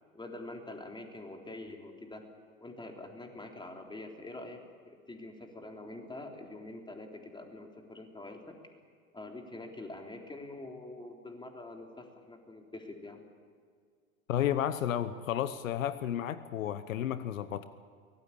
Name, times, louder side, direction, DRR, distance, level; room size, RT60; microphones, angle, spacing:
voice 1, 0.1-2.2 2.6-8.6 9.1-13.2, left 2 dB, 10° left, 3 dB, 3.8 m, -45 dB
voice 2, 14.3-17.6, left 11 dB, 75° left, 14 dB, 1.1 m, -32 dB
24.0 x 18.5 x 8.7 m, 2.1 s
hypercardioid pair, 90°, 40 cm